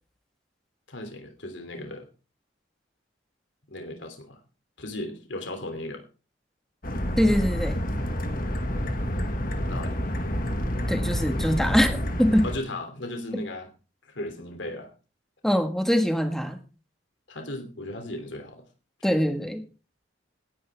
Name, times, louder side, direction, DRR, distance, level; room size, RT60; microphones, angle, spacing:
voice 1, 0.9-2.1 3.7-4.4 4.8-6.0 9.7-9.9 12.4-13.7 14.1-14.9 17.3-18.6 19.0-19.2, left 1 dB, 70° left, 5 dB, 3.1 m, -36 dB
sound 1, 6.8-12.5, equal, 50° left, 2.0 m, -28 dB
voice 2, 7.2-7.8 10.9-12.5 13.3-13.4 15.4-16.6 19.0-19.6, equal, ahead, 6 dB, 1.7 m, -23 dB
18.0 x 11.0 x 3.6 m, 0.35 s
head